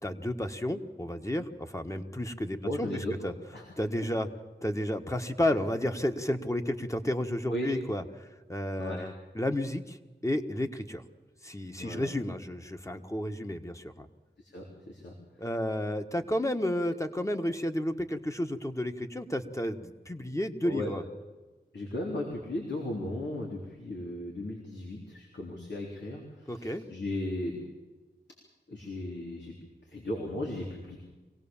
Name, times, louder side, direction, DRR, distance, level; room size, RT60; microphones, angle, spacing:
voice 1, 0.0-3.3 3.8-4.3 4.6-10.0 10.2-11.0 11.4-14.1 15.4-21.0 26.5-26.8, left 1 dB, 15° left, 6 dB, 1.5 m, -32 dB
voice 2, 2.6-3.1 3.5-3.7 5.5-5.6 7.5-7.7 8.8-9.0 11.8-12.1 14.4-15.5 20.6-20.9 21.7-27.6 28.7-29.6 29.9-31.0, left 1 dB, 85° left, -1 dB, 3.7 m, -36 dB
24.5 x 17.5 x 7.3 m, 1.2 s
wide cardioid pair, 65°, 18 cm